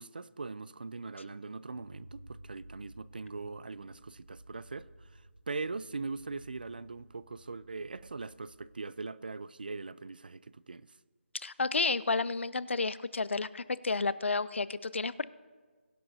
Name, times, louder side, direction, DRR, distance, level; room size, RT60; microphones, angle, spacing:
voice 1, 0.0-10.9, right 3 dB, 45° right, 0.4 m, -41 dB
sound 1, 1.7-8.6, right 1 dB, 70° right, 1.2 m, -54 dB
voice 2, 11.3-15.2, left 4 dB, 65° left, 0.5 m, -31 dB
23.0 x 10.5 x 2.7 m
figure-of-eight pair, 175°, 7 cm